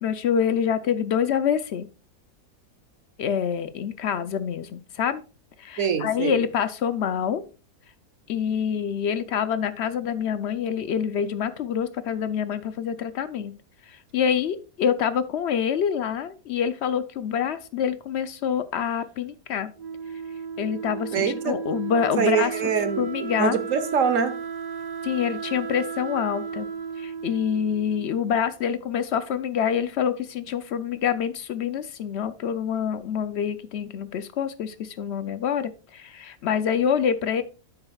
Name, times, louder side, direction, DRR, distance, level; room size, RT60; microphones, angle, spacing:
voice 1, 0.0-1.9 3.2-5.2 5.6-7.4 8.3-13.5 13.9-19.7 20.6-22.5 23.0-23.6 25.0-26.7 27.0-37.4, left 8 dB, 65° left, 13 dB, 0.7 m, -26 dB
voice 2, 5.8-6.4 21.1-21.6 22.2-23.1 23.4-24.3, right 6 dB, 60° right, 12 dB, 1.2 m, -24 dB
Wind instrument woodwind instrument, 19.8-28.5, right 6 dB, 90° right, 0.3 m, -34 dB
9.8 x 7.7 x 2.3 m, 0.34 s
omnidirectional pair, 1.6 m